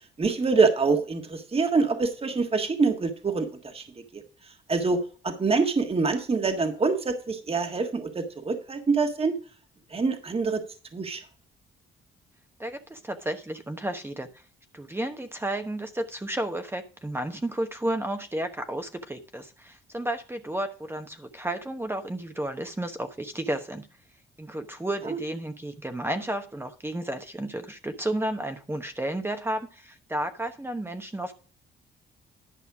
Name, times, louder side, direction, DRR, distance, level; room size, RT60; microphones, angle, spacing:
voice 1, 0.2-3.9 4.1-4.2 4.7-9.4 9.9-10.6 10.9-11.2 25.0-25.2, right 4 dB, 30° right, 6 dB, 1.6 m, -25 dB
voice 2, 12.6-14.3 14.7-23.9 24.4-31.3, right 1 dB, 10° right, 6 dB, 1.0 m, -32 dB
11.0 x 5.5 x 4.8 m, 0.39 s
cardioid pair, 90°, 20 cm